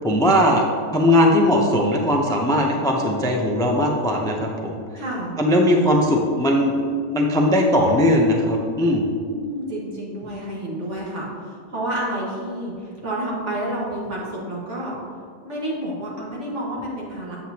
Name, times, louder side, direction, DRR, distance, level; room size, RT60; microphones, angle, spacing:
voice 1, 0.0-4.8 5.4-6.8 7.1-9.0, left 1 dB, 5° left, 1 dB, 0.3 m, -19 dB
voice 2, 4.9-5.3 9.3-14.9 15.4-17.4, right 1 dB, 60° right, -5 dB, 1.9 m, -29 dB
7.7 x 7.7 x 2.9 m, 2.1 s
omnidirectional pair, 1.4 m